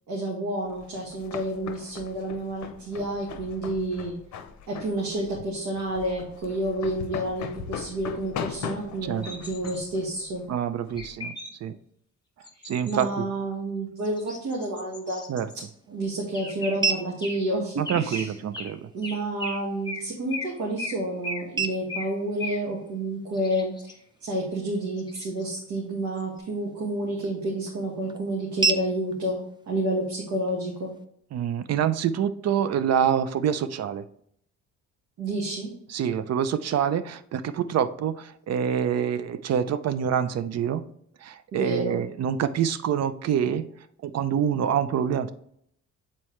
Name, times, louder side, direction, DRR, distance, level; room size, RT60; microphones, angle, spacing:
voice 1, 0.1-4.1 4.7-10.4 12.6-15.2 15.9-18.4 18.9-29.4 29.7-30.9 35.2-35.7 41.5-42.0, right 1 dB, 75° right, -3 dB, 1.7 m, -30 dB
sound 1, 0.7-11.1, left 7 dB, 65° left, 0.8 m, -39 dB
sound 2, 9.2-9.8 11.0-11.5 12.4-13.0 14.0-15.5 16.3-16.8 17.2-17.4 17.8-18.3 18.5-18.7 19.0-19.6 19.8-20.0 20.3-20.5 20.8-21.0 21.2-21.4 21.9-22.1 22.4-22.6 23.3-23.9 25.0-25.4 26.1-26.2, left 2 dB, 15° left, 1.3 m, -36 dB
voice 2, 10.5-11.4 11.6-11.8 12.6-13.1 15.3-15.5 17.8-18.9 31.3-34.0 35.9-40.9 41.2-43.7 44.0-45.3, right 8 dB, 60° right, 13 dB, 0.6 m, -26 dB
sound 3, 15.1-31.1, right 4 dB, 15° right, 0.5 m, -36 dB
7.3 x 4.4 x 3.2 m, 0.69 s
cardioid pair, 90°, 30 cm